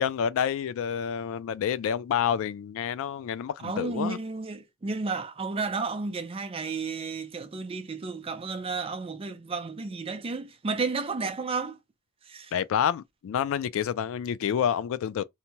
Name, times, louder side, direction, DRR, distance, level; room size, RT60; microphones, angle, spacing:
voice 1, 0.0-4.2 12.5-15.2, left 8 dB, 65° left, 0.3 m, -28 dB
voice 2, 3.6-11.8 12.3-12.5, right 4 dB, 25° right, 0.4 m, -32 dB
2.8 x 2.2 x 2.8 m
head